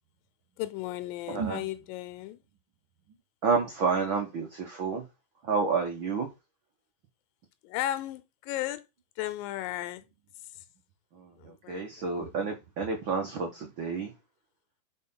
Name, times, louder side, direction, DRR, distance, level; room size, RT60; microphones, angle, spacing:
voice 1, 0.6-2.4 7.6-8.9 9.2-10.0 10.5-10.6 11.4-12.1, left 14 dB, 85° left, 2.4 m, -35 dB
voice 2, 1.3-1.6 3.4-5.0 5.4-6.3 11.1-14.1, right 5 dB, 80° right, 1.1 m, -30 dB
5.0 x 4.5 x 5.5 m
omnidirectional pair, 4.0 m